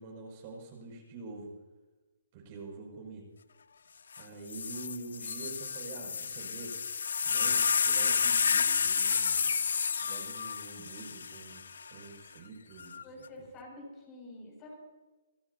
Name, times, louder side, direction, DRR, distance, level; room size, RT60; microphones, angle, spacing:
voice 1, 0.0-1.5 2.3-3.2 4.2-6.7 7.2-9.6 10.0-11.6 11.9-13.1, right 3 dB, 40° right, 0 dB, 6.4 m, -46 dB
sound 1, 4.1-4.2 4.5-11.9 12.8-13.3, left 6 dB, 75° left, 0.6 m, -30 dB
voice 2, 13.0-14.7, left 1 dB, 25° left, -1 dB, 6.7 m, -48 dB
26.0 x 14.5 x 2.9 m, 1.2 s
hypercardioid pair, 145°, 0 cm